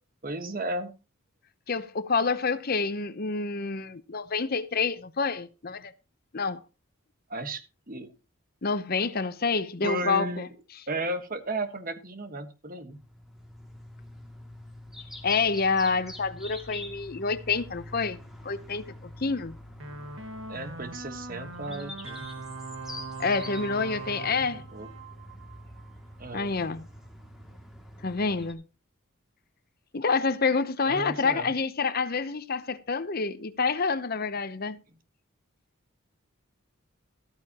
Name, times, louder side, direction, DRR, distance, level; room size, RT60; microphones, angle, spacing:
voice 1, 0.2-0.9 7.3-8.1 9.8-10.5 10.9-13.0 20.5-22.5 24.3-24.9 26.2-26.5 30.8-31.5, right 2 dB, 40° right, 1.4 m, -34 dB
voice 2, 1.7-5.9 6.3-6.6 8.6-10.5 15.2-18.2 18.4-19.6 23.2-24.6 26.3-26.9 28.0-28.6 29.9-34.8, left 4 dB, 45° left, 0.8 m, -28 dB
sound 1, 12.9-28.5, left 1 dB, ahead, 2.3 m, -45 dB
sound 2, 19.8-25.9, right 3 dB, 65° right, 1.8 m, -41 dB
14.0 x 13.5 x 2.9 m
head